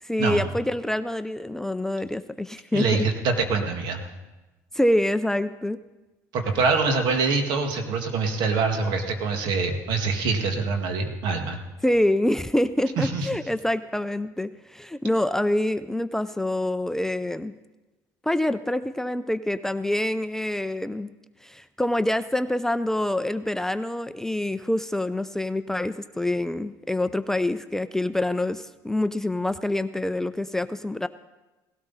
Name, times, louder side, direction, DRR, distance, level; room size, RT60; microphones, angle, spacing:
voice 1, 0.0-2.9 4.7-5.8 11.8-17.5 18.2-21.1 21.4-31.1, left 1 dB, 5° left, 12 dB, 0.4 m, -26 dB
voice 2, 2.7-4.0 6.3-11.6 13.0-13.3, right 4 dB, 70° right, 5 dB, 1.9 m, -24 dB
17.5 x 12.5 x 4.1 m, 1.1 s
supercardioid pair, 95°, 8 cm